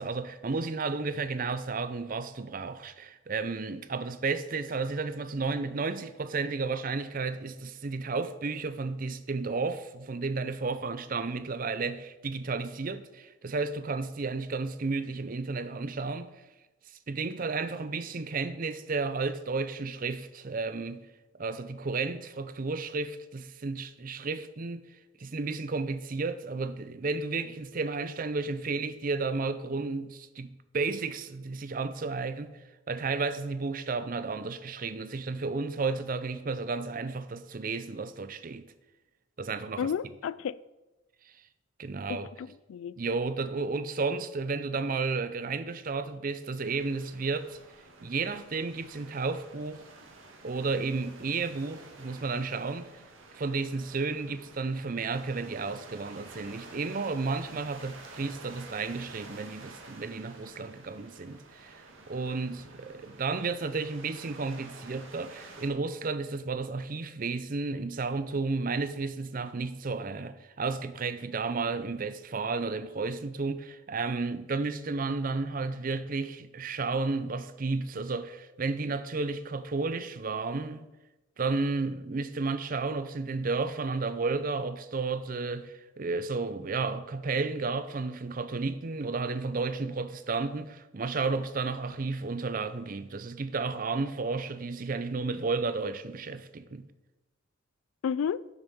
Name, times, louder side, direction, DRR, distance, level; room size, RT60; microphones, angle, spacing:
voice 1, 0.0-16.3 17.1-21.1 21.4-24.9 25.2-32.6 32.9-38.6 39.4-39.9 41.8-42.3 43.0-47.6 48.0-49.9 50.4-52.9 53.4-61.7 62.1-80.9 81.4-96.9, right 4 dB, 45° right, 0.5 m, -32 dB
voice 2, 39.8-40.6 42.1-42.9 98.0-98.4, left 7 dB, 80° left, 0.3 m, -32 dB
sound 1, 46.6-65.7, right 3 dB, 85° right, 1.5 m, -50 dB
6.7 x 6.6 x 6.1 m
head